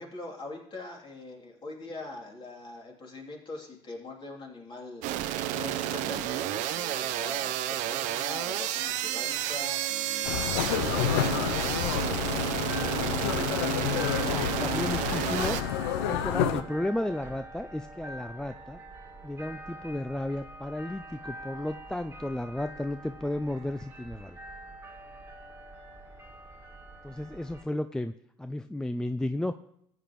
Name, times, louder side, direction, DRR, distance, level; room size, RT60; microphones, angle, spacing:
voice 1, 0.0-15.0 15.9-16.3, left 2 dB, 40° left, -1 dB, 3.0 m, -44 dB
sound 1, 5.0-15.6, right 11 dB, 70° right, 0.7 m, -31 dB
sound 2, 10.2-16.6, left 10 dB, 85° left, 0.6 m, -29 dB
sound 3, 12.7-27.6, right 1 dB, 15° right, 1.9 m, -45 dB
voice 2, 14.3-15.6 16.0-18.8 19.2-24.4 27.0-28.1 28.4-29.5, left 1 dB, 5° left, 9 dB, 0.4 m, -33 dB
14.5 x 8.5 x 3.1 m, 0.75 s
supercardioid pair, 80°, 13 cm